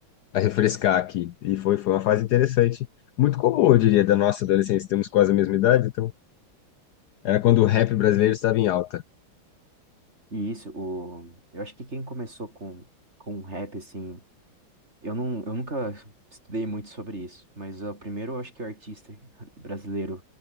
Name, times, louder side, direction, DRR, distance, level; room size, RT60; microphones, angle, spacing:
voice 1, 0.3-2.9 3.2-6.1 7.2-9.0, left 13 dB, 80° left, 0.9 m, -21 dB
voice 2, 10.3-12.9 13.2-14.2 15.0-20.2, right 1 dB, 30° right, 6.9 m, -34 dB
omnidirectional pair, 2.4 m